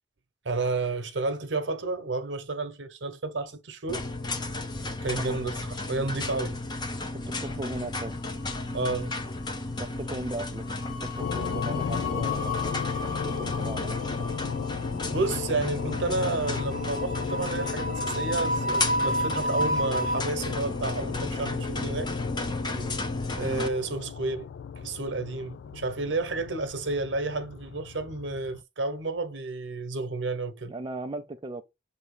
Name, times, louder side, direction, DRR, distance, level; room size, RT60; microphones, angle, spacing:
voice 1, 0.4-4.0 5.0-6.6 8.7-9.1 15.1-22.1 23.4-24.5 24.8-30.7, right 3 dB, 70° right, 1.0 m, -31 dB
sound 1, 3.9-23.7, left 2 dB, 25° left, 0.8 m, -34 dB
voice 2, 7.1-8.2 9.8-10.7 11.0-12.8 13.2-14.3 22.7-22.9 30.7-31.6, right 2 dB, 25° right, 0.5 m, -38 dB
sound 2, 8.1-8.9 9.2-9.5 10.6-20.2, equal, 50° left, 1.4 m, -33 dB
sound 3, 11.2-28.6, left 7 dB, 70° left, 0.3 m, -35 dB
7.1 x 2.9 x 4.8 m
head